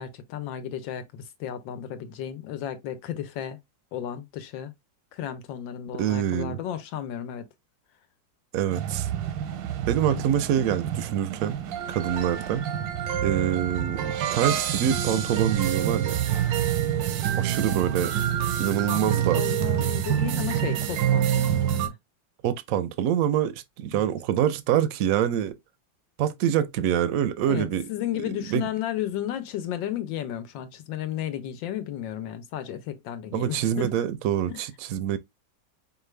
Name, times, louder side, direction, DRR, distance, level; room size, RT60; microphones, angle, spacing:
voice 1, 0.0-3.6 3.9-4.7 5.1-7.5 10.0-10.2 18.8-21.9 23.9-24.1 26.4-26.5 27.5-33.9 34.5-34.6, left 11 dB, 90° left, 1.5 m, -33 dB
voice 2, 5.9-6.6 8.5-9.1 9.9-11.6 11.9-12.6 13.2-16.2 17.4-18.1 18.6-19.4 22.4-25.5 26.2-27.9 28.5-28.7 33.3-35.2, right 10 dB, 70° right, 0.8 m, -25 dB
sound 1, 8.7-21.9, right 10 dB, 90° right, 1.4 m, -27 dB
5.1 x 2.3 x 3.1 m
omnidirectional pair, 2.0 m